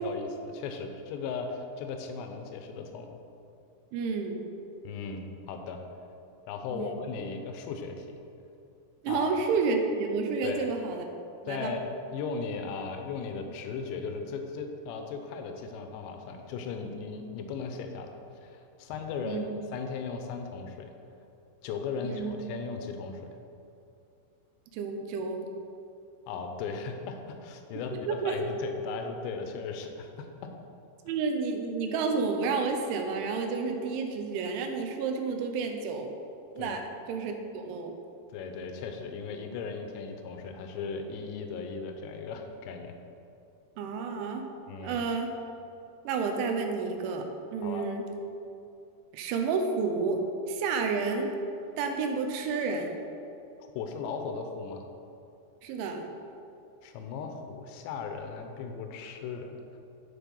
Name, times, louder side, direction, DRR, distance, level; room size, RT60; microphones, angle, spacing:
voice 1, 0.0-3.1 4.8-5.8 6.5-8.2 9.1-9.3 10.4-10.7 11.5-11.8 12.1-20.9 21.6-23.2 26.3-30.5 36.6-36.8 38.3-43.0 44.7-45.0 47.6-47.9 53.8-54.9 56.8-59.8, left 5 dB, 80° left, 5 dB, 2.8 m, -37 dB
voice 2, 3.9-4.4 6.7-7.0 9.0-11.1 11.4-11.7 19.2-19.5 22.0-22.4 24.7-25.4 27.7-28.4 31.1-36.1 36.6-36.8 37.1-37.9 43.8-44.4 44.8-45.3 46.0-47.3 47.5-48.0 49.1-50.2 50.5-51.3 51.8-53.0 55.6-56.0, right 4 dB, 80° right, 4 dB, 3.2 m, -30 dB
12.0 x 4.3 x 5.4 m, 2.7 s
omnidirectional pair, 5.5 m